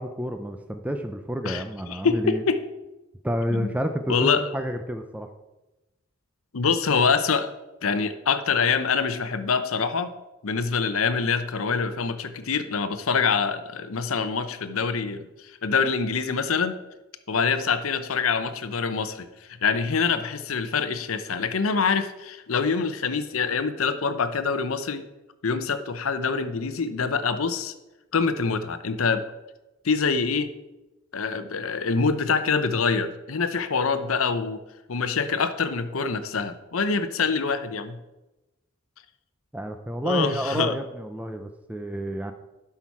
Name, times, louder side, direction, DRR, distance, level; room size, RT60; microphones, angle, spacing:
voice 1, 0.0-2.4 3.2-5.3 39.5-42.3, equal, 5° right, 6 dB, 0.5 m, -29 dB
voice 2, 1.5-2.6 3.5-3.7 4.1-4.5 6.5-7.5 7.8-10.1 10.4-16.8 17.3-19.3 19.6-25.0 25.4-27.7 28.1-29.3 29.8-30.5 31.1-34.6 34.9-38.0 40.0-40.8, left 5 dB, 90° left, 11 dB, 0.7 m, -25 dB
11.5 x 5.8 x 4.7 m, 1.0 s
head